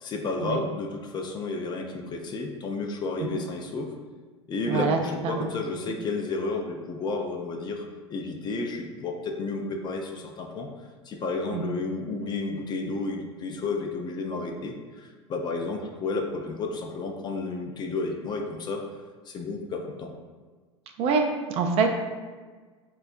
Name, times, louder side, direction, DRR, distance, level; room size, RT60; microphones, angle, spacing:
voice 1, 0.0-3.9 4.5-7.9 8.1-10.7 11.1-18.8 19.3-20.1, left 3 dB, 30° left, 3 dB, 0.4 m, -32 dB
voice 2, 4.7-5.0 5.2-5.5 11.5-11.6 21.0-21.2 21.5-21.9, right 5 dB, 40° right, 3 dB, 0.4 m, -25 dB
4.1 x 2.3 x 2.4 m, 1.4 s
hypercardioid pair, 85°, 16 cm